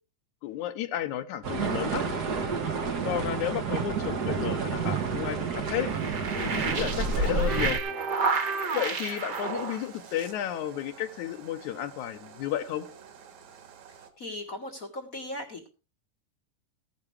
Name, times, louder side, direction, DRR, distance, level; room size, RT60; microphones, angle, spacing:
voice 1, 0.4-2.1 3.0-5.9 6.4-7.8 8.7-12.9, left 11 dB, 75° left, 12 dB, 2.0 m, -32 dB
sound 1, 1.4-7.8, right 4 dB, 80° right, 0.9 m, -29 dB
sound 2, 4.6-10.3, right 5 dB, 45° right, 1.5 m, -31 dB
sound 3, 8.3-14.1, right 7 dB, 60° right, 2.7 m, -50 dB
voice 2, 14.2-15.7, left 1 dB, 50° left, 4 dB, 1.0 m, -38 dB
15.5 x 11.0 x 3.3 m, 0.31 s
omnidirectional pair, 4.0 m